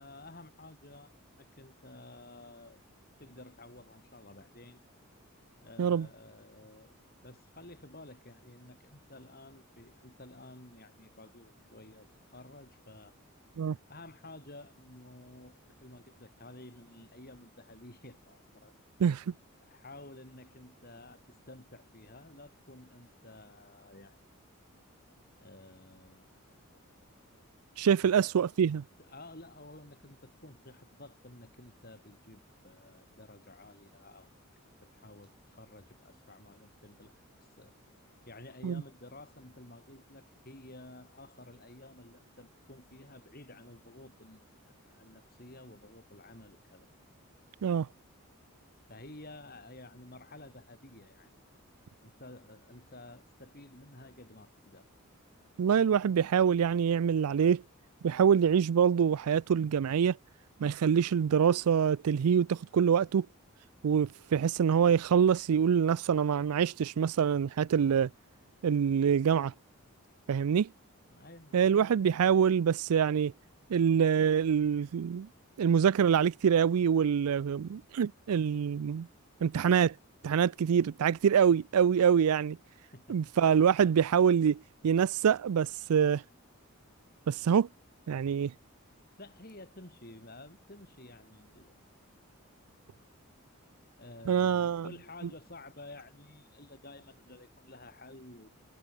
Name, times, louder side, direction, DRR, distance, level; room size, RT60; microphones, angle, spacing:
voice 1, 0.0-2.8 3.2-4.8 5.6-6.9 7.2-13.2 13.9-18.7 19.6-24.4 25.4-26.3 26.7-26.9 27.1-27.4 27.9-28.3 29.0-34.3 34.8-37.1 37.4-37.7 38.3-46.9 48.9-51.3 52.0-54.9 71.1-72.0 82.9-83.3 89.1-91.8 94.0-98.6, left 2 dB, 40° left, 5.3 m, -52 dB
voice 2, 27.8-28.8 38.6-38.8 47.6-47.9 55.6-57.6 58.0-60.2 60.6-63.3 63.8-68.1 68.6-69.5 70.3-70.7 71.5-73.3 73.7-75.3 75.6-79.1 79.4-79.9 80.2-82.6 83.1-86.2 87.3-87.7 88.1-88.5 94.3-94.9, right 7 dB, 85° right, 0.4 m, -25 dB
head